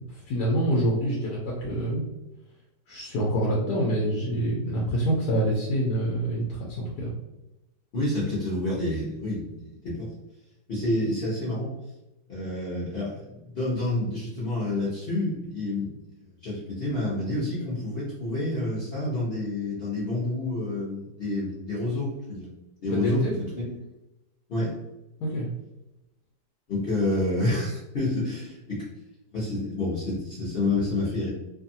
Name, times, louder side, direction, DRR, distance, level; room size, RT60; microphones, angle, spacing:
voice 1, 0.0-2.1 2.9-7.1 22.9-23.4 25.2-25.5, right 1 dB, 75° left, -3 dB, 1.1 m, -26 dB
voice 2, 7.9-10.1 10.7-11.7 12.3-15.9 16.4-22.5 22.8-23.3 23.6-23.7 24.5-24.7 26.7-28.9 29.3-31.3, left 2 dB, 50° left, -9 dB, 0.8 m, -28 dB
2.7 x 2.4 x 2.6 m, 0.96 s
omnidirectional pair, 1.8 m